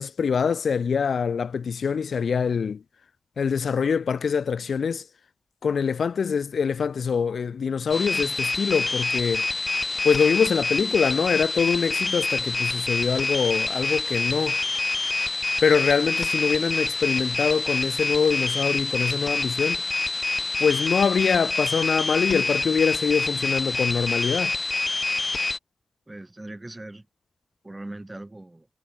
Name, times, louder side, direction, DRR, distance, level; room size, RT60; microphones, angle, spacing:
voice 1, 0.0-2.8 3.4-5.0 5.6-9.5 10.0-14.6 15.6-19.8 20.6-24.6, left 6 dB, 80° left, 0.8 m, -24 dB
sound 1, 7.9-25.6, left 3 dB, 40° left, 1.6 m, -26 dB
voice 2, 26.1-27.1 27.6-28.7, right 1 dB, 25° right, 2.7 m, -40 dB
cardioid pair, 50°, 0 cm